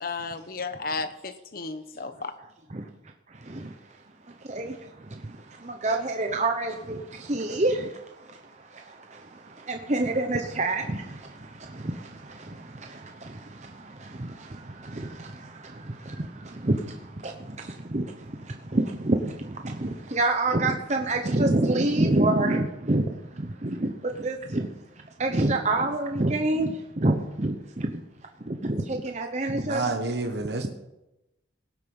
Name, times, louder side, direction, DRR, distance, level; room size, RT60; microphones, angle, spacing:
voice 1, 0.0-2.3, left 4 dB, 50° left, 1.0 m, -33 dB
voice 2, 3.3-3.7 4.4-24.7 25.2-28.0 28.4-29.8, right 2 dB, 35° right, 0.9 m, -28 dB
voice 3, 29.6-30.7, right 3 dB, 60° right, 1.1 m, -29 dB
17.5 x 8.2 x 5.5 m
head